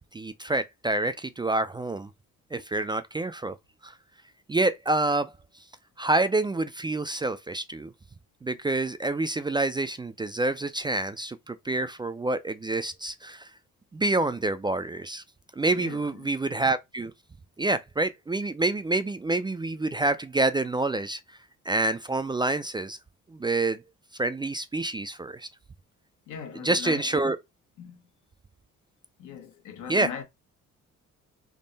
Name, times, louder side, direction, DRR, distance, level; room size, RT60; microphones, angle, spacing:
voice 1, 0.0-2.1 2.5-3.6 3.8-3.9 4.5-5.3 6.0-7.9 8.4-13.5 13.9-15.2 15.6-17.1 17.6-21.2 21.7-23.0 23.3-23.8 24.2-25.5 26.6-27.4 29.9-30.1, right 2 dB, 15° right, 0.3 m, -27 dB
voice 2, 15.7-16.3 26.3-27.2 27.8-28.0 29.2-30.2, left 8 dB, 85° left, 1.1 m, -39 dB
3.7 x 2.1 x 3.9 m
cardioid pair, 90°, 30 cm